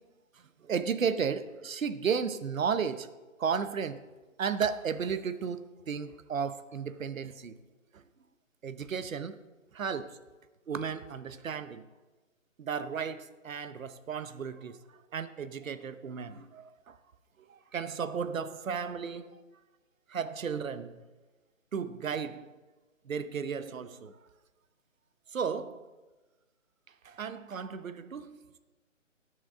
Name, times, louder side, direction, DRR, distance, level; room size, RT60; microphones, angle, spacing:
voice 1, 0.6-3.1 3.4-4.0 4.4-7.6 7.9-8.0 8.6-9.4 9.7-10.1 10.7-11.8 12.6-14.8 15.1-17.0 17.5-19.4 20.1-21.0 21.7-22.5 23.1-24.2 25.3-25.9 27.0-28.6, right 6 dB, 80° right, 0.9 m, -34 dB
18.0 x 6.8 x 3.6 m
hypercardioid pair, 175°, 40 cm